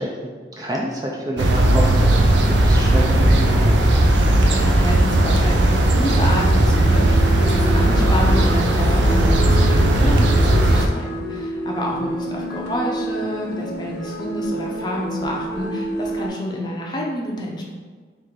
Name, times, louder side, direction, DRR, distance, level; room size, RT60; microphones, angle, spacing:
voice 1, 0.0-3.8 12.0-12.1, right 1 dB, 20° right, -2 dB, 0.4 m, -28 dB
sound 1, 1.4-10.9, right 1 dB, 80° right, 0.5 m, -16 dB
voice 2, 4.2-17.6, equal, 25° left, -1 dB, 0.6 m, -28 dB
sound 2, 4.9-16.3, equal, 85° left, 0.8 m, -30 dB
3.7 x 2.6 x 4.6 m, 1.5 s
head